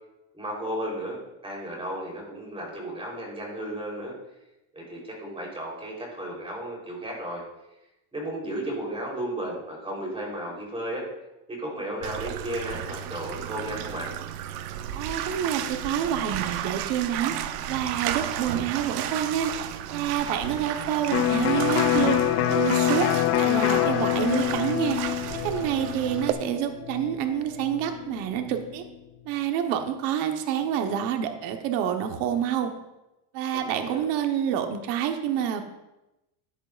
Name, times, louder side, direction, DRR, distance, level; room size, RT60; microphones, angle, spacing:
voice 1, 0.3-1.2 1.4-4.1 4.7-7.4 8.1-11.0 11.5-14.1 33.7-34.0, right 1 dB, 10° right, -2 dB, 3.7 m, -34 dB
Bathtub (filling or washing), 12.0-26.3, right 11 dB, 85° right, 0.9 m, -33 dB
voice 2, 14.9-17.3 17.7-19.5 19.9-22.2 22.5-23.1 23.4-25.0 25.4-28.8 29.2-32.7 33.3-35.6, right 9 dB, 65° right, 5 dB, 1.2 m, -27 dB
Electric guitar, 21.1-28.8, left 12 dB, 35° left, 0.4 m, -26 dB
13.5 x 10.5 x 2.5 m, 0.95 s
cardioid pair, 140°, 44 cm